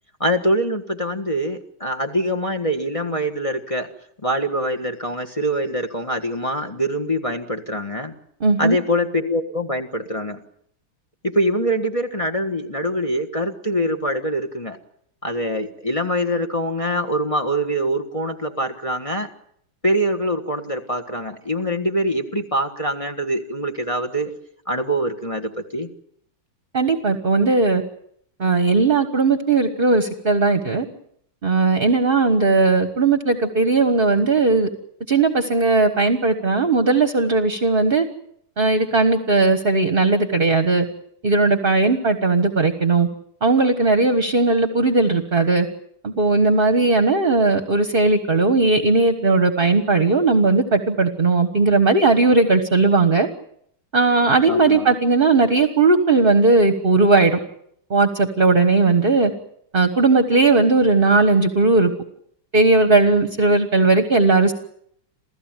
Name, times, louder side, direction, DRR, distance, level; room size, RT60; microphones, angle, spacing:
voice 1, 0.2-3.9 4.2-8.1 8.6-10.4 11.2-14.8 15.2-19.3 19.8-24.3 24.7-25.9 54.5-54.9, equal, 20° left, 7 dB, 1.3 m, -24 dB
voice 2, 8.4-8.8 26.7-27.8 28.4-30.8 31.4-34.7 35.1-38.0 38.6-40.9 41.2-43.1 43.4-45.7 46.0-53.3 53.9-57.4 57.9-59.3 59.7-61.9 62.5-64.5, right 3 dB, 30° right, 9 dB, 1.4 m, -17 dB
28.0 x 16.0 x 9.1 m, 0.70 s
omnidirectional pair, 2.4 m